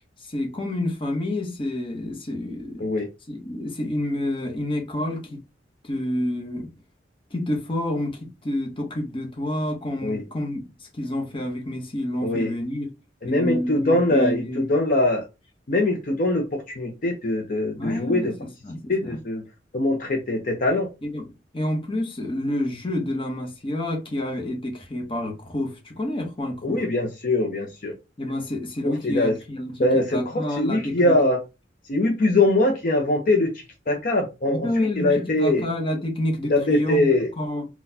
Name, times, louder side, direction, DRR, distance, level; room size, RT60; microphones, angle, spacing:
voice 1, 0.2-2.9 3.3-5.4 5.8-6.7 7.3-12.9 13.2-14.6 17.8-19.2 21.0-26.9 28.2-31.1 34.5-37.7, left 1 dB, 30° left, 0.9 m, -28 dB
voice 2, 13.2-15.2 15.7-18.3 18.9-19.4 19.7-20.9 26.6-27.9 28.8-29.3 29.8-31.4 31.9-33.5 33.9-35.6 36.5-37.3, left 2 dB, 50° left, 0.6 m, -22 dB
3.9 x 2.3 x 2.7 m
head